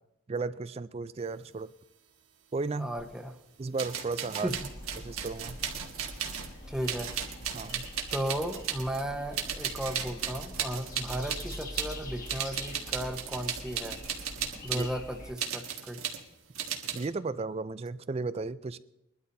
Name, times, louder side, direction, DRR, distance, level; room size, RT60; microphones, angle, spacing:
voice 1, 0.3-1.7 2.5-2.9 3.6-4.5 5.0-5.6 7.5-7.9 14.7-14.9 16.9-18.8, right 3 dB, 30° right, 15 dB, 0.3 m, -34 dB
voice 2, 2.8-3.3 4.4-4.6 6.7-7.1 8.1-14.0 14.6-16.0, right 1 dB, 5° right, 3 dB, 1.0 m, -35 dB
sound 1, 3.0-3.1 3.7-6.6 6.8-9.0 9.3-12.0 12.2-14.9 15.4-16.2 16.5-17.1, right 8 dB, 90° right, 1.7 m, -36 dB
sound 2, 4.5-15.3, left 1 dB, 40° left, 1.7 m, -44 dB
22.0 x 12.5 x 2.7 m, 0.87 s
head